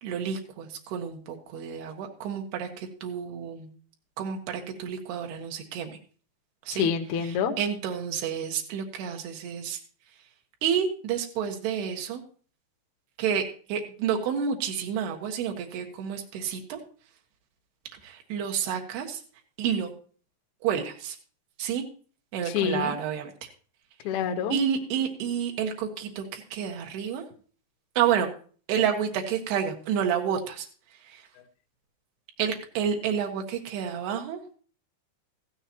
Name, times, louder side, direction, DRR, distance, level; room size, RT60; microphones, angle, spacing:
voice 1, 0.0-3.7 4.2-6.0 6.7-6.9 7.2-9.8 10.6-12.2 13.2-13.4 13.7-16.8 18.0-19.2 19.6-19.9 20.6-21.2 21.6-21.8 22.3-23.3 24.5-27.2 28.0-28.3 28.7-30.7 31.1-31.2 32.4-34.4, right 8 dB, 75° right, 3 dB, 3.4 m, -29 dB
voice 2, 6.7-7.5 22.5-22.9 24.0-24.6, left 7 dB, 85° left, 4 dB, 1.6 m, -27 dB
15.0 x 13.0 x 3.0 m, 0.41 s
omnidirectional pair, 4.8 m